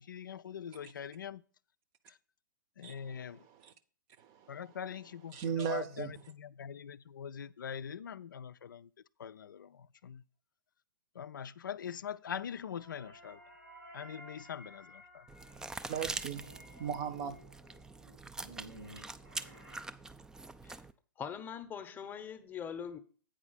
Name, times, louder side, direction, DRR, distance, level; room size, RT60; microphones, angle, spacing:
voice 1, 0.0-1.4 2.1-2.2 2.8-3.4 4.5-8.9 9.2-10.2 11.2-13.4 13.9-15.2, left 8 dB, 70° left, 0.4 m, -43 dB
voice 2, 2.8-3.7 4.2-4.6 5.3-6.1 15.9-17.4, right 8 dB, 35° right, 0.7 m, -38 dB
sound 1, 12.4-19.8, right 1 dB, 85° right, 3.2 m, -55 dB
sound 2, 15.3-20.9, right 3 dB, 5° right, 0.3 m, -44 dB
voice 3, 21.2-23.0, left 7 dB, 20° left, 0.8 m, -42 dB
8.9 x 4.8 x 5.6 m
figure-of-eight pair, 110°, 11 cm